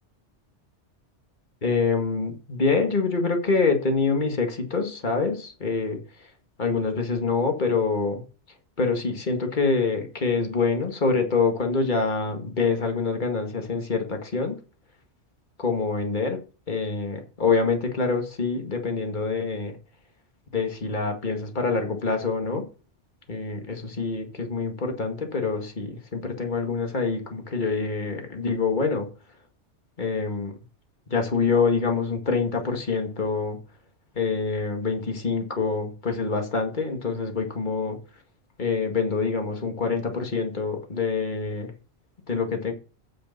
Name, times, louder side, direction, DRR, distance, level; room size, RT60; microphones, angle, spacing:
voice 1, 1.6-6.0 6.6-8.2 8.8-14.6 15.6-16.4 16.7-19.8 20.5-22.6 23.3-29.1 30.0-30.5 31.1-33.6 34.2-38.0 38.6-41.7 42.3-42.7, left 4 dB, 40° left, 4 dB, 2.1 m, -25 dB
9.3 x 6.8 x 5.9 m, 0.35 s
omnidirectional pair, 1.2 m